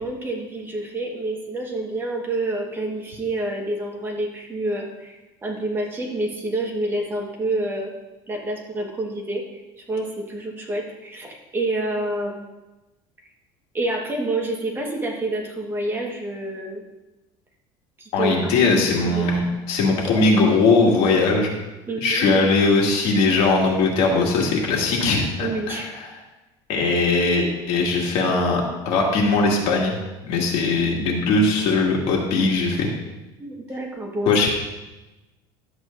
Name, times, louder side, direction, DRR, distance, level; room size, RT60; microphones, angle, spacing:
voice 1, 0.0-7.9 8.3-9.4 9.9-12.5 13.7-16.8 18.0-18.5 19.0-19.3 21.9-22.4 25.4-25.9 33.4-34.5, right 2 dB, 20° right, -1 dB, 1.5 m, -28 dB
voice 2, 18.1-21.6 22.0-26.1 26.7-30.0 30.2-32.9 34.3-34.5, left 3 dB, 60° left, -1 dB, 2.2 m, -20 dB
12.5 x 8.1 x 2.6 m, 1.0 s
cardioid pair, 150°, 11 cm